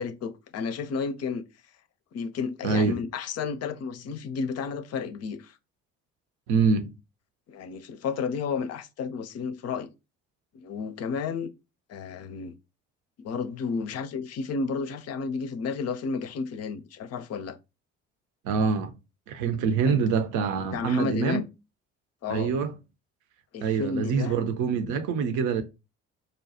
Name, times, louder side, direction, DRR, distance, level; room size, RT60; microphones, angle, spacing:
voice 1, 0.0-1.4 2.1-5.6 7.5-9.9 10.5-11.5 11.9-12.5 13.2-17.6 19.9-20.0 20.7-21.5 22.2-22.5 23.5-24.4, left 5 dB, 45° left, 0.6 m, -32 dB
voice 2, 2.6-3.0 6.5-6.9 18.4-18.9 19.3-21.4 22.3-22.7 23.6-25.6, right 5 dB, 55° right, 0.7 m, -25 dB
5.1 x 2.3 x 2.7 m
figure-of-eight pair, 50°, 36 cm